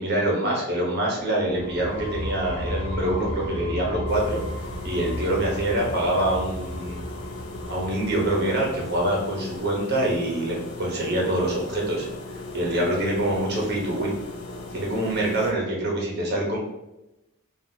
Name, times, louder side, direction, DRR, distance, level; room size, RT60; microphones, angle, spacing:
voice 1, 0.0-4.4 4.8-7.0 7.7-12.1 12.5-14.1 14.7-16.6, right 1 dB, 50° right, -2 dB, 1.1 m, -25 dB
sound 1, 1.5-9.1, equal, 55° left, 1.3 m, -34 dB
sound 2, 4.1-15.5, left 2 dB, 70° left, 0.7 m, -38 dB
5.5 x 2.8 x 2.9 m, 0.96 s
head